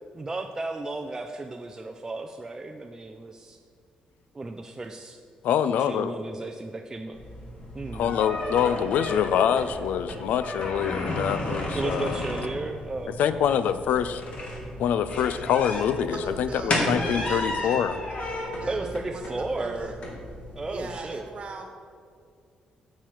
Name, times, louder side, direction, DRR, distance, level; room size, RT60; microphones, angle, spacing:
voice 1, 0.1-3.6 4.3-5.2 5.8-7.2 7.7-8.2 11.7-13.4 18.7-20.0 20.6-21.3, right 2 dB, 20° right, 4 dB, 0.4 m, -34 dB
voice 2, 5.4-6.1 7.9-12.2 13.2-14.2 14.8-18.0, left 8 dB, 80° left, 13 dB, 0.4 m, -25 dB
sound 1, 7.1-21.0, left 1 dB, 45° left, 1.8 m, -33 dB
voice 3, 13.6-14.2 16.1-17.9 18.5-19.8 20.7-21.6, right 3 dB, 50° right, 4 dB, 1.3 m, -40 dB
8.9 x 7.4 x 4.6 m, 2.3 s
cardioid pair, 105°, 3 cm